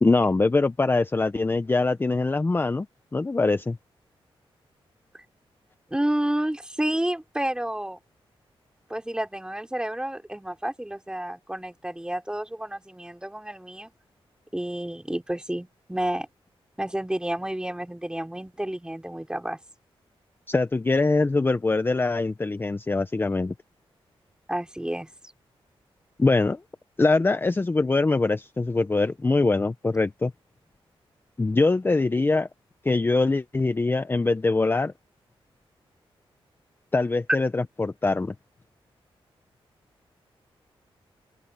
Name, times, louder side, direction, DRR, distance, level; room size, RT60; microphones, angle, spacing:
voice 1, 0.0-2.9 3.1-3.8 20.5-23.5 26.2-26.6 27.0-30.3 31.4-32.5 32.8-34.9 36.9-38.3, left 3 dB, 20° left, 0.7 m, -23 dB
voice 2, 5.9-8.0 8.9-13.9 14.5-16.3 16.8-19.6 24.5-25.1, right 1 dB, 10° right, 4.5 m, -30 dB
open air
cardioid pair, 95°, 10 cm